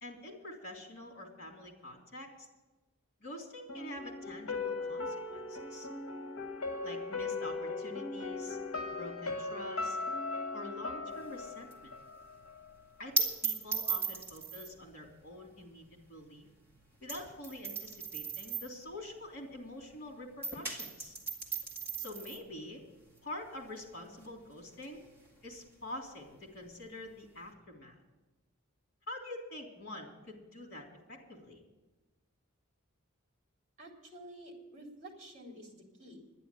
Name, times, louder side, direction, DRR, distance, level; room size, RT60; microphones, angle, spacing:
voice 1, 0.0-2.5 3.2-5.9 6.8-8.6 8.9-10.0 10.5-11.9 13.0-16.5 17.0-21.1 22.0-22.8 23.2-25.0 25.4-27.9 29.1-31.6, left 1 dB, 50° left, 1 dB, 3.4 m, -46 dB
sound 1, 3.7-12.7 13.0-13.1, left 3 dB, 80° left, 1.0 m, -38 dB
sound 2, 11.1-20.0 20.3-27.5, right 4 dB, 10° right, 2.1 m, -39 dB
voice 2, 33.8-36.2, right 1 dB, 35° right, 0 dB, 3.4 m, -50 dB
11.0 x 10.5 x 8.5 m, 1.1 s
head